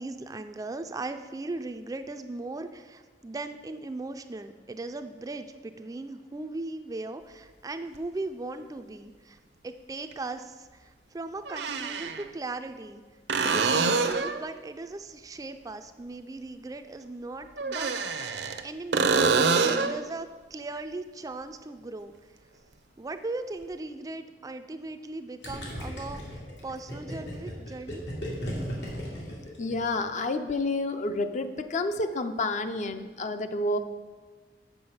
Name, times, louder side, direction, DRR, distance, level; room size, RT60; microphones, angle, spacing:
voice 1, 0.0-13.0 13.4-18.2 18.6-22.1 23.0-28.1, right 2 dB, 20° right, 8 dB, 0.3 m, -38 dB
sound 1, 7.9-8.0 10.1-10.2 11.4-12.2 13.3-14.4 17.6-18.6 18.9-20.0 23.6-23.7, right 4 dB, 70° right, 0.6 m, -25 dB
Gurgling, 25.4-30.1, equal, 85° left, 2.4 m, -36 dB
voice 2, 29.6-33.8, left 2 dB, 45° left, 9 dB, 0.5 m, -29 dB
7.0 x 6.9 x 5.5 m, 1.4 s
head